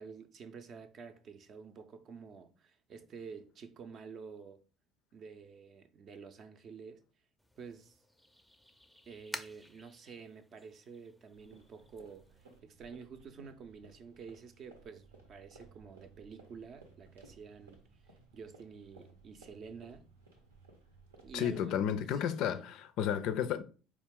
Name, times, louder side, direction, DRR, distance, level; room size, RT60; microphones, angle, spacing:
voice 1, 0.0-4.6 5.1-7.0 7.6-8.0 9.1-20.1 21.2-22.7, right 5 dB, 50° right, 0.5 m, -50 dB
sound 1, 7.4-12.6, equal, ahead, 0.5 m, -51 dB
sound 2, 11.3-21.6, right 4 dB, 85° right, 0.8 m, -59 dB
voice 2, 21.3-23.6, left 9 dB, 60° left, 0.4 m, -32 dB
4.4 x 2.3 x 3.5 m
figure-of-eight pair, 60°, 0 cm